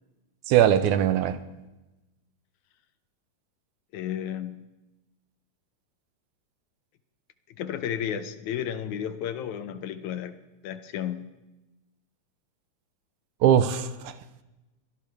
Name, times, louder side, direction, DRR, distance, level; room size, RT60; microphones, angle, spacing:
voice 1, 0.5-1.4 13.4-14.1, right 10 dB, 80° right, 12 dB, 2.2 m, -21 dB
voice 2, 3.9-4.6 7.6-11.3, left 9 dB, 75° left, 11 dB, 2.1 m, -33 dB
23.5 x 17.5 x 3.5 m, 1.0 s
omnidirectional pair, 3.5 m